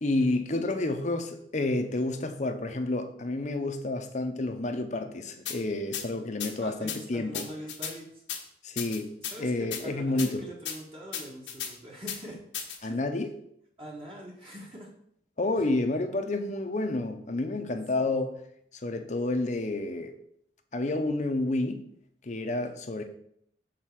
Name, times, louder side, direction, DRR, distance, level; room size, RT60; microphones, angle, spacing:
voice 1, 0.0-7.5 8.6-10.4 12.8-13.3 15.4-18.4 18.8-20.2 20.7-21.9 22.2-23.0, left 2 dB, 40° left, 0.7 m, -30 dB
sound 1, 5.4-5.6 5.9-6.0 6.4-6.5 6.9-7.0 7.3-7.9 8.3-8.4 8.8-9.3 9.7-9.8 10.2-10.3 10.6-10.8 11.1-11.7 12.1-12.2 12.5-12.8, left 8 dB, 85° left, 1.2 m, -34 dB
voice 2, 6.6-8.2 9.2-13.0 13.8-14.9 15.6-15.7 18.0-18.2, equal, 30° right, 1.4 m, -43 dB
6.4 x 4.2 x 5.9 m
head